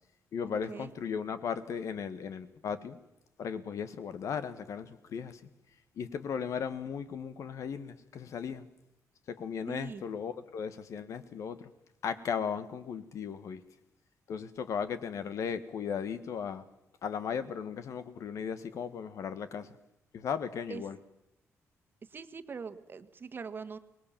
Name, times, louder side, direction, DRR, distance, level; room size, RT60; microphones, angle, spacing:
voice 1, 0.3-3.0 3.4-5.4 6.0-8.7 9.3-11.7 12.0-13.6 14.3-16.6 17.0-19.8 20.1-21.0, left 7 dB, 70° left, 12 dB, 1.5 m, -36 dB
voice 2, 9.7-10.0 20.7-20.8 22.1-23.8, right 5 dB, 40° right, 10 dB, 1.4 m, -42 dB
24.0 x 19.5 x 7.3 m, 0.87 s
cardioid pair, 115°, 6 cm